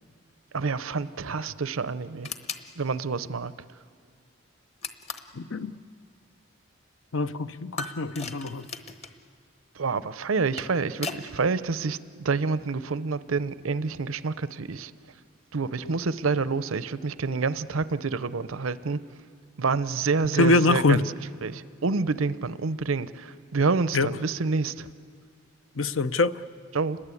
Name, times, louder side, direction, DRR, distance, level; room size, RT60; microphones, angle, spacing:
voice 1, 0.5-2.3 2.8-3.5 9.8-14.9 15.5-19.0 19.6-21.0 21.4-24.9 26.7-27.0, right 4 dB, 85° right, 0.7 m, -28 dB
sound 1, 2.2-2.7 4.8-5.4 7.8-9.2 10.3-11.3, left 4 dB, 30° left, 1.1 m, -37 dB
voice 2, 5.3-5.7 7.1-8.7 15.8-16.0 20.4-21.0 23.9-24.1 25.8-26.4, left 3 dB, 75° left, 0.7 m, -24 dB
29.0 x 21.5 x 8.5 m
head